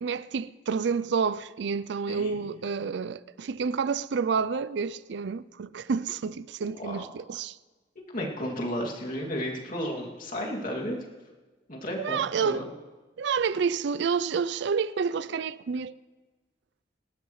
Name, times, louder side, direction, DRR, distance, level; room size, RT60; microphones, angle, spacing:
voice 1, 0.0-7.6 12.0-12.7 13.2-15.9, right 5 dB, 65° right, 0.4 m, -29 dB
voice 2, 8.1-11.0 11.7-12.6, equal, 45° left, 2.5 m, -33 dB
26.5 x 12.5 x 3.2 m
head